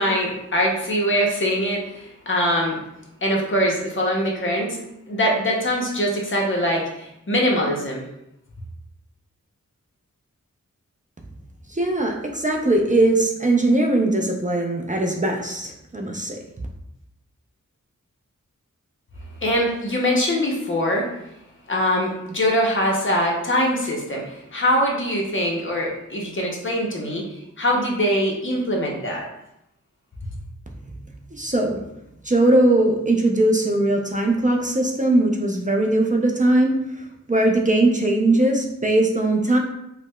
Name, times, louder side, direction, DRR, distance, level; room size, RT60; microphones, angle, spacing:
voice 1, 0.0-2.8 3.2-4.8 5.1-8.1 19.4-21.1 21.7-27.3 27.6-29.3, equal, 40° left, -2 dB, 0.7 m, -23 dB
voice 2, 11.7-16.4 31.3-31.8 32.2-39.6, right 2 dB, 25° right, 0 dB, 0.4 m, -20 dB
4.6 x 2.1 x 2.2 m, 0.84 s
wide cardioid pair, 55°, 31 cm